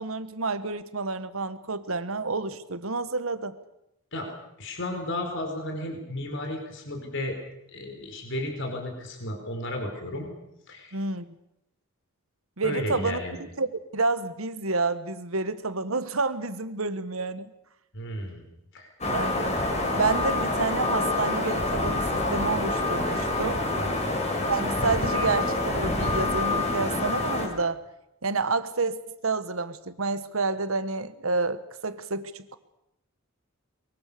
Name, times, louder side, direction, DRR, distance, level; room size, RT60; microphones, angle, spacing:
voice 1, 0.0-3.6 10.9-11.4 12.6-13.2 13.6-17.5 19.1-19.6 19.9-23.7 24.5-27.8 28.2-32.6, right 3 dB, 80° right, 12 dB, 1.5 m, -29 dB
voice 2, 4.6-7.4 7.7-10.3 10.7-11.0 12.6-13.4 17.9-18.5 18.7-18.9 23.8-24.2, left 1 dB, 60° left, 4 dB, 4.3 m, -33 dB
sound 1, 19.0-27.5, left 2 dB, 35° left, 5.3 m, -27 dB
23.5 x 23.0 x 6.9 m, 0.85 s
head